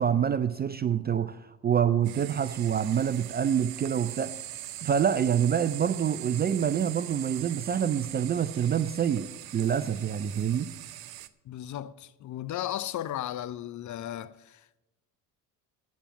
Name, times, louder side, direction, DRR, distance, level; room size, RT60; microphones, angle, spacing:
voice 1, 0.0-4.3 4.8-10.7, right 8 dB, 25° right, 0.3 m, -26 dB
sound 1, 2.0-11.3, right 14 dB, 50° right, 0.7 m, -41 dB
voice 2, 11.5-14.8, left 12 dB, 40° left, 0.5 m, -35 dB
8.3 x 7.8 x 8.3 m
hypercardioid pair, 60°, 48 cm